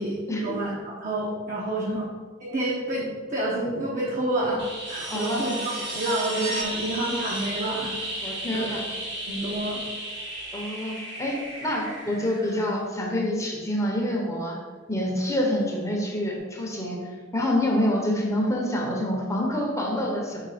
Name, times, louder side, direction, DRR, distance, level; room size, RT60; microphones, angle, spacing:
voice 1, 0.0-2.1 2.4-7.9 8.2-8.7 9.3-9.8, right 1 dB, 45° right, -5 dB, 1.0 m, -29 dB
sound 1, 4.6-13.3 15.6-15.7, right 1 dB, 65° right, 1.6 m, -34 dB
voice 2, 5.1-5.4 8.2-8.8 10.5-14.6 14.9-17.0 17.3-20.4, left 1 dB, 15° left, -1 dB, 0.9 m, -27 dB
5.6 x 3.3 x 5.0 m, 1.4 s
head